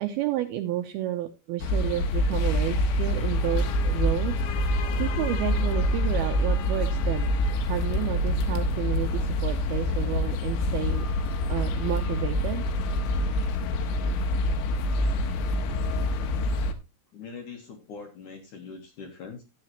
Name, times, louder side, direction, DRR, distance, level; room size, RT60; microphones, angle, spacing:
voice 1, 0.0-7.3 7.7-11.1 11.5-12.6, right 13 dB, 80° right, 5 dB, 2.3 m, -31 dB
sound 1, 1.6-16.7, left 1 dB, 85° left, 3.5 m, -26 dB
voice 2, 17.1-19.4, left 5 dB, 60° left, 4 dB, 2.2 m, -42 dB
13.5 x 8.8 x 3.0 m, 0.24 s
omnidirectional pair, 5.2 m